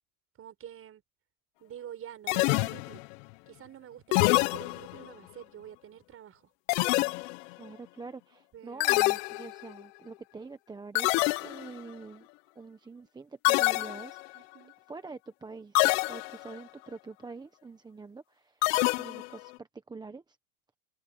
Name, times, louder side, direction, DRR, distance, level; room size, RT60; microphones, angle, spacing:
voice 1, 0.4-1.0 1.6-3.0 3.5-6.4 8.5-9.0 14.3-14.7, right 10 dB, 30° right, 6.3 m, -47 dB
sound 1, 2.3-3.1 4.1-5.1 6.7-7.5 8.8-9.8 10.9-11.8 13.4-14.4 15.7-16.6 18.6-19.5, left 24 dB, 55° left, 1.0 m, -26 dB
voice 2, 7.6-12.3 12.5-14.5 14.9-18.6 18.9-20.4, right 4 dB, 10° right, 1.2 m, -45 dB
open air
supercardioid pair, 135°, 47 cm